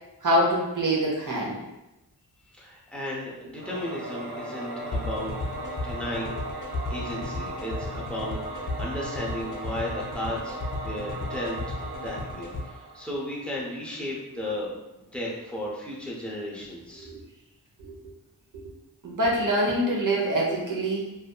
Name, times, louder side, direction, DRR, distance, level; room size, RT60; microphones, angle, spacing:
voice 1, 0.2-1.6 17.0-17.2 19.0-21.2, right 1 dB, 55° right, -3 dB, 0.8 m, -25 dB
voice 2, 2.5-5.4 5.8-6.4 6.8-10.6 10.8-11.7 12.0-17.1, left 1 dB, 5° left, -5 dB, 0.6 m, -35 dB
Singing / Musical instrument, 3.5-13.6, right 2 dB, 90° right, 0.9 m, -37 dB
sound 1, 4.9-12.6, left 3 dB, 55° left, 0.6 m, -34 dB
2.6 x 2.4 x 2.2 m, 0.94 s
wide cardioid pair, 75°, 38 cm